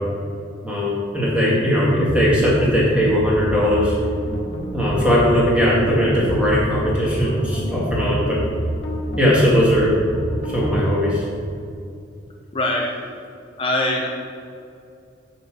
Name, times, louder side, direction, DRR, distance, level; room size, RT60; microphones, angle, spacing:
voice 1, 0.6-3.9 4.7-8.4 9.2-10.0 10.5-11.2, equal, 5° right, -7 dB, 2.1 m, -19 dB
sound 1, 2.1-11.0, right 1 dB, 80° left, 1.4 m, -28 dB
voice 2, 12.5-13.0 13.6-14.1, left 1 dB, 30° left, -1 dB, 0.7 m, -22 dB
7.0 x 5.8 x 6.1 m, 2.5 s
head